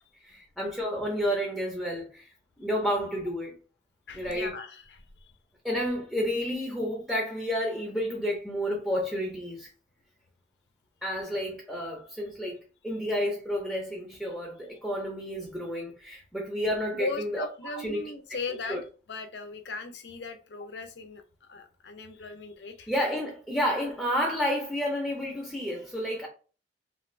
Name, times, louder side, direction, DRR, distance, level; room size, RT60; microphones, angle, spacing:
voice 1, 0.2-2.3 2.6-3.5 4.1-4.6 5.6-9.7 11.0-18.0 18.7-18.8 22.9-26.3, equal, 5° left, 0.6 m, -30 dB
voice 2, 4.1-5.3 16.9-18.8 19.1-22.9, left 3 dB, 75° left, 0.6 m, -38 dB
2.5 x 2.5 x 3.2 m
head